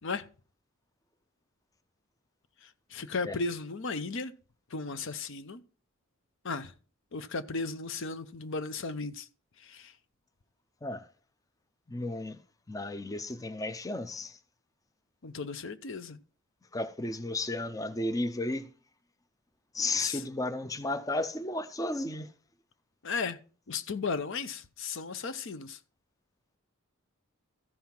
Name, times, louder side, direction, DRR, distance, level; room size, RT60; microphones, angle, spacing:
voice 1, 2.9-4.3 4.7-5.6 6.4-6.7 7.1-9.3 9.6-9.9 15.2-16.2 20.0-20.2 23.0-23.4 23.7-25.8, left 4 dB, 60° left, 0.7 m, -35 dB
voice 2, 11.9-12.4 12.7-14.4 16.7-18.7 19.7-22.3, left 2 dB, 15° left, 0.5 m, -33 dB
14.0 x 5.5 x 4.4 m
head